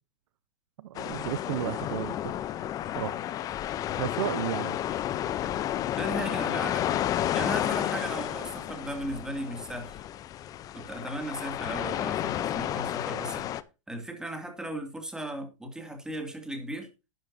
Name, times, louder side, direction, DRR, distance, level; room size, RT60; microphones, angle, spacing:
voice 1, 0.8-2.4 3.0-3.2 4.0-4.8, right 13 dB, 65° right, 0.6 m, -33 dB
sound 1, 0.9-13.6, left 12 dB, 20° left, 0.6 m, -31 dB
voice 2, 6.0-7.0 7.3-10.0 10.7-13.5 13.9-16.9, right 1 dB, 5° right, 2.3 m, -36 dB
11.5 x 10.5 x 2.7 m
hypercardioid pair, 150°, 17 cm